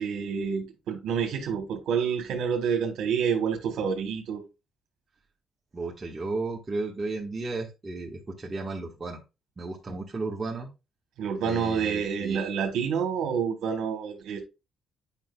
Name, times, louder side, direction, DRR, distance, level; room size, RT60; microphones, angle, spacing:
voice 1, 0.0-4.4 9.9-10.0 11.2-14.4, right 7 dB, 80° right, 1.3 m, -28 dB
voice 2, 5.7-9.2 9.6-10.7 11.4-12.4, right 3 dB, 30° right, 1.5 m, -34 dB
8.9 x 5.5 x 2.3 m
cardioid pair, 90°, 0 cm